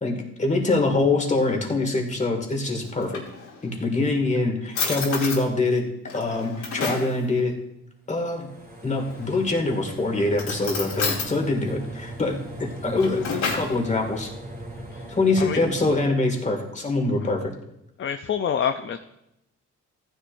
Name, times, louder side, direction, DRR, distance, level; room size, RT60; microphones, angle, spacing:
voice 1, 0.0-3.2 3.6-5.8 6.1-7.5 8.1-8.5 8.8-14.3 15.1-17.5, left 2 dB, 25° left, 2 dB, 2.3 m, -24 dB
Drawer open or close, 2.8-3.8 4.4-4.5 4.7-5.4 6.1-7.1 9.0-9.6 10.3-11.3 12.7-13.8, left 4 dB, 75° left, 2.9 m, -30 dB
sound 1, 8.2-16.0, right 1 dB, 30° right, 3.2 m, -39 dB
voice 2, 18.0-19.0, left 8 dB, 40° left, 7 dB, 0.6 m, -26 dB
14.5 x 10.0 x 2.7 m, 0.83 s
cardioid pair, 90°, 30 cm